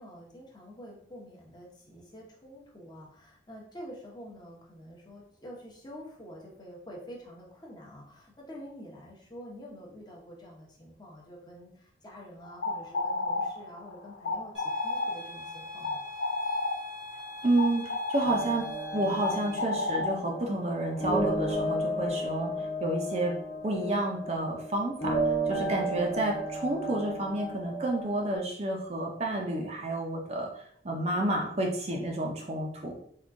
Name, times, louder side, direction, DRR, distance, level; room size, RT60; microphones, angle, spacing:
voice 1, 0.0-16.0, equal, 25° left, -2 dB, 0.8 m, -47 dB
sound 1, 12.4-21.3, left 3 dB, 70° left, 0.4 m, -33 dB
sound 2, 14.5-19.6, left 2 dB, 80° right, 0.9 m, -43 dB
voice 2, 17.4-18.7 18.9-22.5 22.8-23.3 23.6-25.2 25.5-30.5 30.8-32.9, right 1 dB, 35° right, 0 dB, 0.5 m, -30 dB
sound 3, 18.2-28.4, right 1 dB, 50° left, 0.9 m, -33 dB
3.6 x 2.3 x 3.6 m, 0.65 s
head